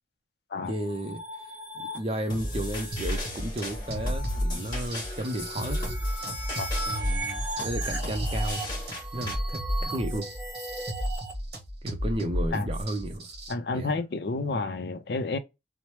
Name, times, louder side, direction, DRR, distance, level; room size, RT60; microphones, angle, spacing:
sound 1, 0.6-11.3, right 1 dB, 5° right, 1.0 m, -38 dB
voice 1, 0.7-1.2 1.7-5.8 6.2-6.3 6.9-8.6 9.1-10.3 11.8-13.3 13.7-14.0, right 1 dB, 30° right, 0.5 m, -33 dB
sound 2, 2.3-9.3, left 1 dB, 25° left, 1.3 m, -36 dB
sound 3, 2.9-13.5, equal, 60° right, 0.8 m, -33 dB
voice 2, 13.5-15.4, left 3 dB, 65° left, 0.5 m, -30 dB
3.0 x 2.0 x 3.1 m
head